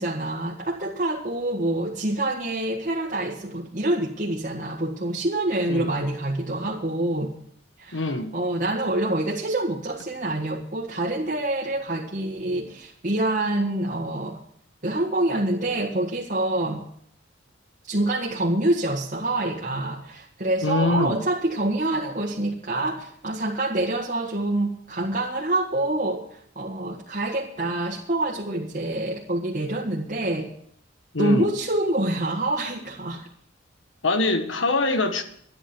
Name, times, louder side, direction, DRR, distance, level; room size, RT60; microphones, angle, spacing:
voice 1, 0.0-7.3 7.8-14.4 14.8-16.9 17.9-30.5 31.2-33.2, right 1 dB, 45° right, 1.7 m, -26 dB
voice 2, 7.9-8.3 20.6-21.2 31.1-31.5 34.0-35.2, left 2 dB, 85° left, 1.5 m, -24 dB
11.5 x 10.0 x 7.8 m
head